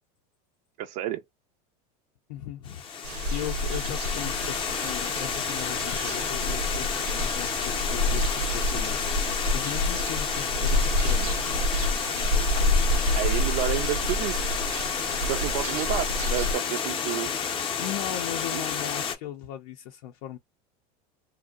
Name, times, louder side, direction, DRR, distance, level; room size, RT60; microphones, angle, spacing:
voice 1, 0.8-1.2 13.1-14.4 15.3-17.3 18.5-18.6, right 13 dB, 55° right, 0.4 m, -30 dB
voice 2, 2.3-11.4 17.8-20.4, left 12 dB, 70° left, 0.5 m, -38 dB
Water, 2.6-19.1, left 7 dB, 25° left, 0.6 m, -30 dB
sound 1, 3.0-16.6, left 1 dB, 85° right, 0.8 m, -28 dB
2.6 x 2.1 x 2.3 m
supercardioid pair, 135°, 20 cm